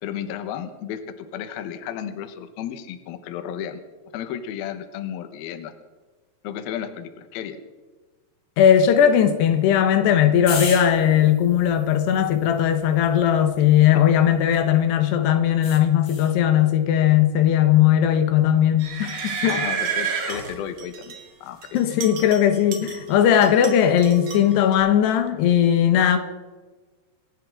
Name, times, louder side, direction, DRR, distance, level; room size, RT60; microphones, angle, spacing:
voice 1, 0.0-3.8 4.1-5.7 6.4-7.6 19.5-21.9, left 9 dB, 75° left, 2.8 m, -33 dB
voice 2, 8.6-19.6 21.7-26.2, left 9 dB, 90° left, 3.3 m, -18 dB
sound 1, 10.5-14.9 15.6-16.4 19.1-19.5, left 5 dB, 45° left, 1.4 m, -37 dB
sound 2, 18.8-21.2 21.6-23.1 23.4-24.7, right 6 dB, 45° right, 2.7 m, -30 dB
26.5 x 11.0 x 3.8 m
omnidirectional pair, 4.7 m